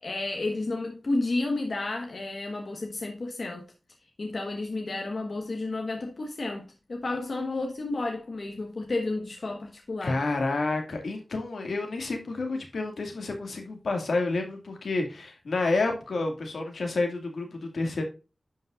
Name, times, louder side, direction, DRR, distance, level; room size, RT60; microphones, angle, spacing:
voice 1, 0.0-3.7 4.2-10.2, left 2 dB, 65° left, 1.4 m, -31 dB
voice 2, 10.0-18.0, left 3 dB, 90° left, 2.2 m, -29 dB
11.0 x 5.6 x 2.5 m
wide cardioid pair, 65°, 0 cm